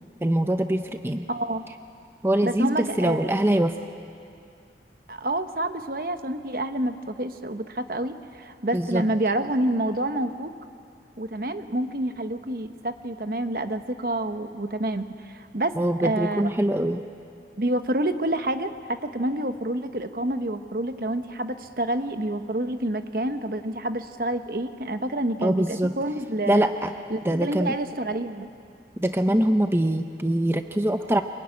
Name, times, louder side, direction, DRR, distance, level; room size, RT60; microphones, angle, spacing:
voice 1, 0.2-1.3 2.2-3.8 8.7-9.0 15.8-17.0 25.4-25.9 26.5-26.9 27.2-27.8 29.0-31.2, right 1 dB, 15° right, 7 dB, 0.7 m, -23 dB
voice 2, 1.3-1.6 2.4-3.3 5.1-10.5 11.2-15.7 16.0-16.5 17.6-26.7 27.1-28.5, right 1 dB, 50° right, 8 dB, 1.1 m, -28 dB
26.5 x 23.0 x 9.8 m, 2.4 s
head